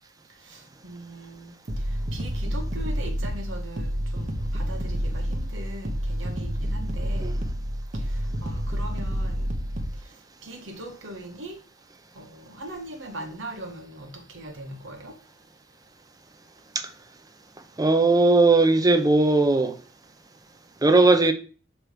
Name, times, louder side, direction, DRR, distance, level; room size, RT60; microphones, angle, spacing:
voice 1, 0.4-1.6 1.9-7.3 7.9-9.5 10.0-10.1 10.4-11.6 12.1-15.2, right 1 dB, 70° right, 1.1 m, -40 dB
sound 1, 1.7-10.0, equal, 40° right, 0.9 m, -29 dB
voice 2, 17.8-19.7 20.8-21.3, right 3 dB, 20° right, 0.6 m, -18 dB
6.5 x 3.1 x 4.8 m
head